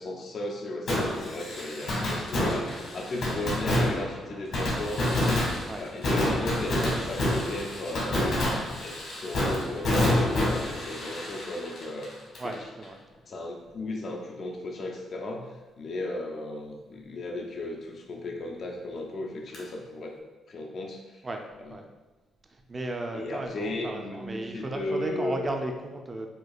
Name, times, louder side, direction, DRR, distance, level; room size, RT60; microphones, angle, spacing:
voice 1, 0.0-5.5 5.8-8.5 8.8-12.1 12.4-12.7 13.3-20.2 20.5-21.2 21.6-21.7 23.1-25.5, left 2 dB, 50° left, 1 dB, 0.4 m, -36 dB
Fireworks, 0.9-12.5 12.8-12.9 19.5-19.6, left 1 dB, 70° left, 1.3 m, -28 dB
voice 2, 12.4-13.0 21.2-21.4 21.7-21.9 22.7-26.3, right 2 dB, 25° right, 3 dB, 0.4 m, -34 dB
4.4 x 2.4 x 2.3 m, 1.2 s
cardioid pair, 90°, 0 cm